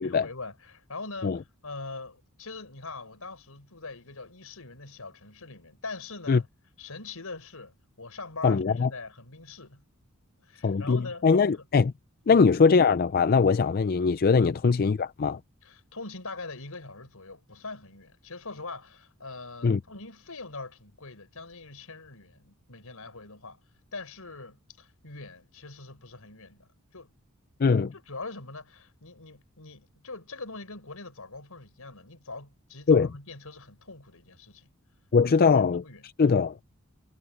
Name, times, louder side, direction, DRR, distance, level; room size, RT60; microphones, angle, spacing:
voice 1, 0.0-6.5 6.8-9.8 10.4-11.2 11.5-11.6 12.2-12.5 15.6-23.6 23.9-27.1 27.7-34.7 35.4-36.0, left 3 dB, 75° left, 5.0 m, -42 dB
voice 2, 8.4-8.9 10.6-11.9 12.3-15.4 19.6-19.8 27.6-27.9 32.9-33.1 35.1-35.8 36.2-36.5, left 5 dB, 45° left, 0.4 m, -21 dB
head